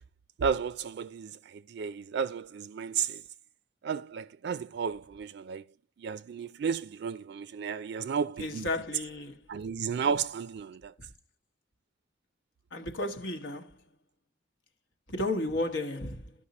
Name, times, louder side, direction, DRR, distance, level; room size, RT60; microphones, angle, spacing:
voice 1, 0.4-3.2 3.8-5.6 6.0-8.7 9.5-10.9, right 6 dB, 65° right, 0.3 m, -33 dB
voice 2, 8.4-9.5 12.7-13.7 15.1-16.3, left 2 dB, 90° left, 1.3 m, -33 dB
13.0 x 5.4 x 4.1 m
head